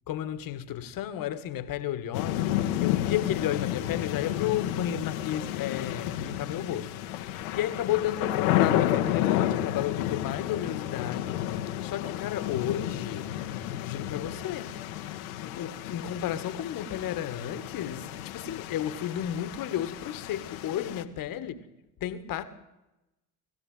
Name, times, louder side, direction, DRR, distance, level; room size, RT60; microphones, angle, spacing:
voice 1, 0.1-11.4 11.8-14.8 15.4-21.7 22.0-22.4, left 11 dB, 45° left, 1.8 m, -33 dB
sound 1, 2.1-21.0, left 12 dB, 65° left, 1.4 m, -31 dB
20.5 x 15.5 x 9.2 m
figure-of-eight pair, 55°, 45 cm